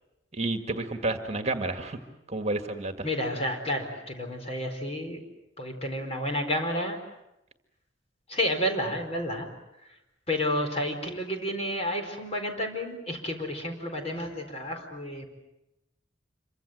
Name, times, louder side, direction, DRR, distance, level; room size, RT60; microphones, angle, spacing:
voice 1, 0.3-2.0 2.3-3.1, right 2 dB, 35° right, 6 dB, 1.9 m, -30 dB
voice 2, 3.0-5.2 5.6-7.0 8.3-9.5 10.3-15.3, equal, 35° left, 4 dB, 4.5 m, -30 dB
27.0 x 24.5 x 8.0 m, 0.90 s
head